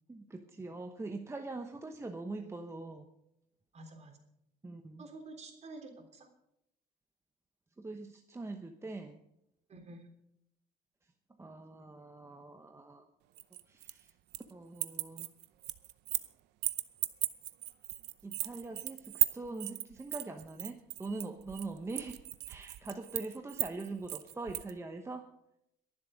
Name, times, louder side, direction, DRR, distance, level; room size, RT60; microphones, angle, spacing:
voice 1, 0.1-3.0 4.6-5.0 7.8-9.2 11.4-13.1 13.7-14.1 14.5-15.3 18.2-22.2 22.5-25.3, right 3 dB, 15° right, 5 dB, 1.0 m, -43 dB
voice 2, 3.7-4.2 5.0-6.3 9.7-10.1, right 2 dB, 40° right, 4 dB, 3.5 m, -49 dB
sound 1, 13.4-14.5 14.8-16.3 16.6-24.7, right 18 dB, 85° right, 0.7 m, -36 dB
23.0 x 7.6 x 5.1 m, 0.80 s
cardioid pair, 110°, 17 cm